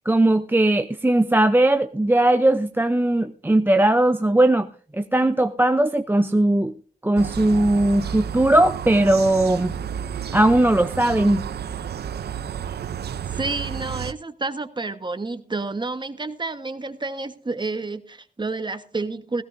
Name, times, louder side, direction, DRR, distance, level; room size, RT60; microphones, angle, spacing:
voice 1, 0.1-6.7 7.0-9.7 10.3-11.4, right 1 dB, 10° right, 8 dB, 0.6 m, -19 dB
sound 1, 7.2-14.1, right 8 dB, 85° right, 0.6 m, -31 dB
voice 2, 13.4-19.4, right 3 dB, 30° right, 9 dB, 1.3 m, -30 dB
16.5 x 16.0 x 2.6 m, 0.43 s
cardioid pair, 80°, 16 cm